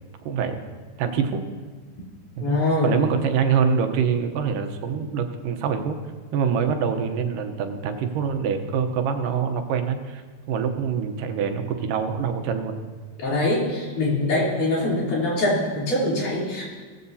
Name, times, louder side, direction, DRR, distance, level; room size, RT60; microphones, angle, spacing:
voice 1, 0.3-0.6 1.0-1.4 2.4-6.0 6.3-12.8, right 6 dB, 80° right, 6 dB, 2.6 m, -25 dB
voice 2, 2.4-2.9 13.2-16.6, left 1 dB, 65° left, -6 dB, 4.8 m, -23 dB
18.0 x 15.0 x 2.8 m, 1.4 s
omnidirectional pair, 3.8 m